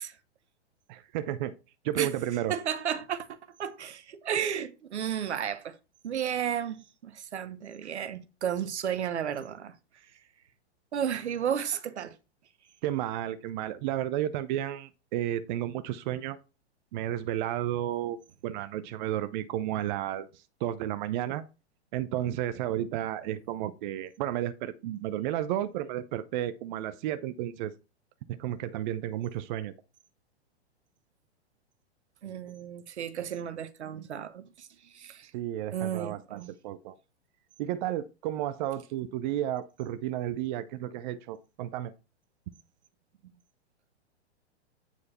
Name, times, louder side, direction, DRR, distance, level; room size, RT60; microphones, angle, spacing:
voice 1, 0.9-1.6 1.8-2.6 12.8-16.4 16.9-18.2 18.4-21.4 21.9-27.7 28.3-29.7 35.3-37.0 37.6-41.9, right 12 dB, 45° right, 0.7 m, -32 dB
voice 2, 2.5-5.8 6.0-9.7 10.9-12.2 32.2-35.3 35.7-36.5, right 9 dB, 80° right, 1.0 m, -33 dB
8.7 x 4.7 x 4.2 m
hypercardioid pair, 120°, 34 cm